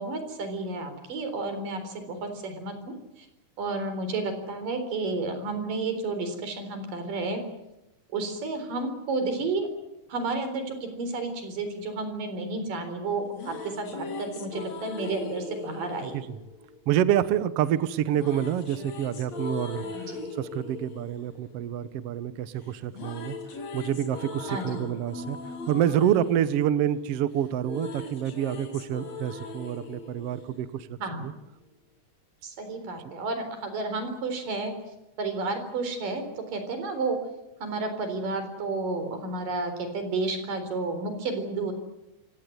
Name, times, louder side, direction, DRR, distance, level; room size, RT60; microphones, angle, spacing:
voice 1, 0.0-3.3 3.6-7.4 8.1-9.7 10.1-16.2 19.9-20.2 24.5-24.8 31.0-31.3 32.4-34.7 35.2-37.2 37.6-41.7, right 3 dB, 60° right, 8 dB, 5.5 m, -31 dB
sound 1, 13.1-17.3 18.1-22.3 22.6-31.1, left 3 dB, 45° left, 3.6 m, -40 dB
voice 2, 16.9-23.4 23.7-25.4 25.7-31.0 31.2-31.3, right 10 dB, 90° right, 14 dB, 1.3 m, -27 dB
27.5 x 17.0 x 9.4 m, 0.92 s
omnidirectional pair, 4.4 m